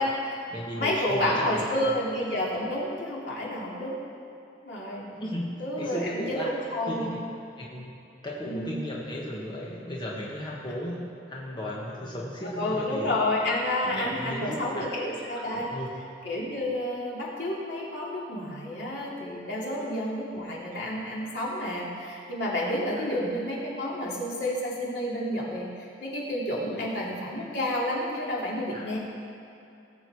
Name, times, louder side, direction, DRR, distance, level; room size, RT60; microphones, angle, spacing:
voice 1, 0.0-0.4 0.8-4.0 4.6-5.1 5.6-7.3 8.4-8.8 12.6-15.7 16.2-29.0, left 1 dB, 70° left, -5 dB, 2.8 m, -30 dB
voice 2, 0.5-1.8 5.1-6.5 6.9-7.3 7.6-7.9 8.2-13.1 13.8-14.9 15.3-15.9 19.6-19.7 20.7-20.8 22.9-23.0 26.8-26.9 28.7-28.8, equal, 25° left, -4 dB, 1.4 m, -35 dB
18.0 x 7.8 x 4.7 m, 2.7 s
head